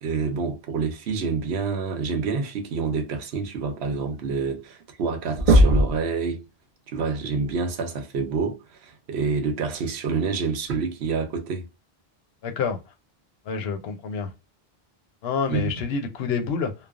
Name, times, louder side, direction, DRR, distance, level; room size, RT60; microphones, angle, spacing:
voice 1, 0.0-6.4 6.9-11.7 15.5-15.7, right 5 dB, 90° right, 0.9 m, -27 dB
sound 1, 4.8-5.1 5.4-6.0 7.7-7.8 9.7-9.8 10.7-10.8, right 1 dB, 50° right, 0.4 m, -18 dB
voice 2, 12.4-12.8 13.5-14.3 15.2-16.7, left 5 dB, 80° left, 0.8 m, -27 dB
3.2 x 2.0 x 2.3 m
omnidirectional pair, 1.0 m